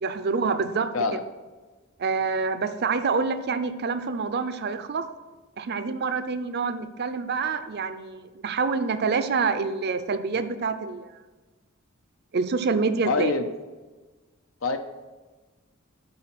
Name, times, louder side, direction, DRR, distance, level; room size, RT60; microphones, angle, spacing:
voice 1, 0.0-1.2 2.0-5.1 5.6-11.1 12.3-13.3, right 4 dB, 50° right, 11 dB, 0.5 m, -27 dB
voice 2, 13.1-13.5 14.6-14.8, left 3 dB, 75° left, 7 dB, 0.8 m, -24 dB
8.8 x 4.3 x 6.0 m, 1.3 s
head